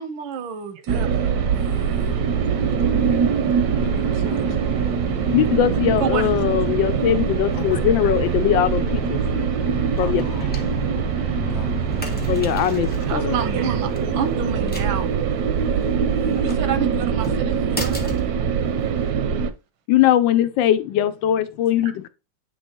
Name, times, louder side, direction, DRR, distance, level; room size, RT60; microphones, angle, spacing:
voice 1, 0.0-1.5 2.5-2.6 6.0-6.6 13.1-15.1 16.4-18.0 21.8-21.9, right 6 dB, 90° right, 1.7 m, -29 dB
sound 1, 0.9-19.5, right 7 dB, 65° right, 1.0 m, -23 dB
sound 2, 1.0-19.1, right 2 dB, 5° left, 0.7 m, -33 dB
voice 2, 3.6-4.7 9.9-10.6 11.5-12.3, left 8 dB, 60° left, 1.3 m, -42 dB
voice 3, 5.3-9.2 10.0-10.2 12.3-13.4 19.9-22.1, left 11 dB, 80° left, 1.4 m, -20 dB
8.6 x 3.1 x 4.4 m
omnidirectional pair, 2.1 m